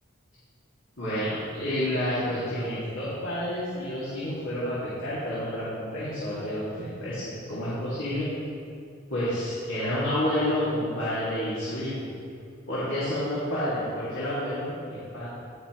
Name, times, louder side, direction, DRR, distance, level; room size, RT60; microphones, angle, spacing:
voice 1, 1.0-7.2 7.5-8.3 9.1-12.1 12.7-15.3, left 1 dB, 75° left, -10 dB, 2.2 m, -29 dB
17.0 x 5.7 x 3.0 m, 2.3 s
head